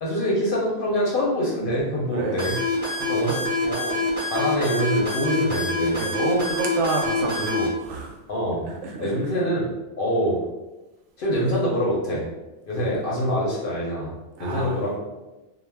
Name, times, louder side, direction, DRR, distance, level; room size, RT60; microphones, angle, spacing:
voice 1, 0.0-2.6 3.1-3.4 3.6-3.9 4.3-6.0 8.3-8.7 9.0-10.4 11.2-12.3 12.6-14.1 14.4-15.0, equal, 55° left, -4 dB, 0.7 m, -25 dB
voice 2, 2.1-2.5 3.0-3.5 5.9-8.1 8.7-9.2 12.8-12.9 14.4-14.8, right 3 dB, 75° right, 0 dB, 0.9 m, -28 dB
sound 1, 2.4-7.7, left 2 dB, 20° right, 0.5 m, -26 dB
2.3 x 2.1 x 3.3 m, 1.1 s
omnidirectional pair, 1.3 m